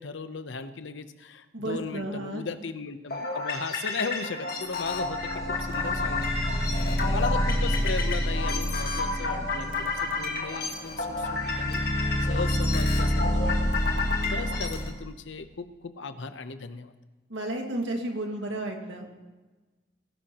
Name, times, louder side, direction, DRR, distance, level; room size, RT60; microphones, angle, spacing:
voice 1, 0.0-5.3 5.6-11.8 12.3-13.8 14.3-16.9, left 4 dB, 70° left, 10 dB, 0.8 m, -37 dB
voice 2, 1.5-2.5 17.3-19.1, right 1 dB, 70° right, 2 dB, 1.9 m, -32 dB
sound 1, 3.1-14.9, left 3 dB, 50° left, 2.0 m, -31 dB
sound 2, 4.8-14.9, equal, 15° left, 1.3 m, -28 dB
19.5 x 11.5 x 3.0 m, 1.2 s
head